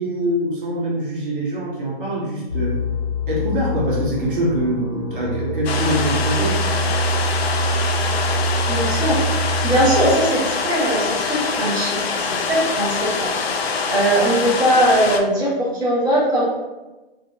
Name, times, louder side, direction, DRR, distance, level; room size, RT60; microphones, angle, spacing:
voice 1, 0.0-2.8 3.3-6.6, right 1 dB, 55° right, -4 dB, 0.9 m, -24 dB
sound 1, 2.5-10.1, right 1 dB, 15° left, 1.0 m, -24 dB
sound 2, 5.7-15.2, left 4 dB, 80° left, 0.5 m, -24 dB
voice 2, 8.7-13.3 13.9-16.4, right 1 dB, 15° right, -9 dB, 1.1 m, -20 dB
3.8 x 2.4 x 2.7 m, 1.1 s
hypercardioid pair, 145°, 31 cm